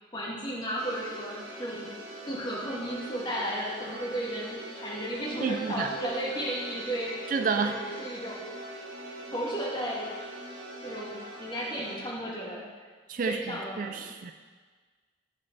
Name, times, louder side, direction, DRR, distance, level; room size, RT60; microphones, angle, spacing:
voice 1, 0.1-1.9 2.3-7.1 7.4-8.4 9.3-10.1 10.8-12.6 13.2-14.2, right 1 dB, 25° left, -6 dB, 2.2 m, -34 dB
sound 1, 0.8-12.0, right 1 dB, 60° right, 2.3 m, -42 dB
voice 2, 5.4-5.9 7.3-7.8 13.1-13.4 13.8-14.3, right 5 dB, 45° right, 7 dB, 0.3 m, -29 dB
15.5 x 5.4 x 4.0 m, 1.5 s
head